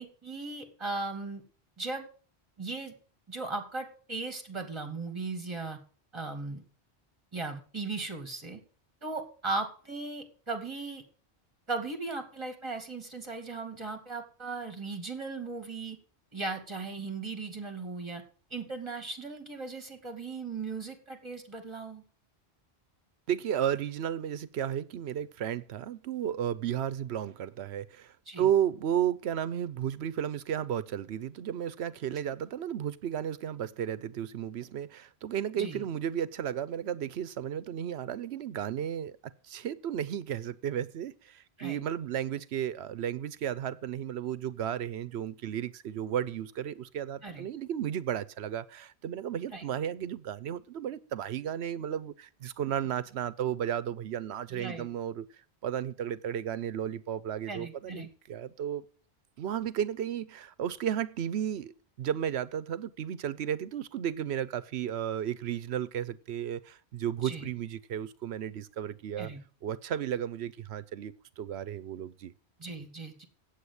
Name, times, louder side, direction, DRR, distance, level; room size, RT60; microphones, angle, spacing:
voice 1, 0.0-1.4 1.8-2.1 2.6-2.9 3.3-5.8 6.1-6.6 7.3-8.6 9.0-11.0 11.7-16.0 16.3-18.2 18.5-22.0 28.3-28.4 35.6-35.8 41.6-41.8 47.2-47.4 49.5-49.6 54.5-54.9 57.5-58.1 67.2-67.5 69.2-69.4 72.6-73.3, right 3 dB, 25° right, 2.4 m, -37 dB
voice 2, 23.3-39.2 39.5-55.3 55.6-58.8 59.4-69.3 69.6-72.3, right 9 dB, 80° right, 0.9 m, -33 dB
8.4 x 8.3 x 8.0 m
omnidirectional pair, 1.1 m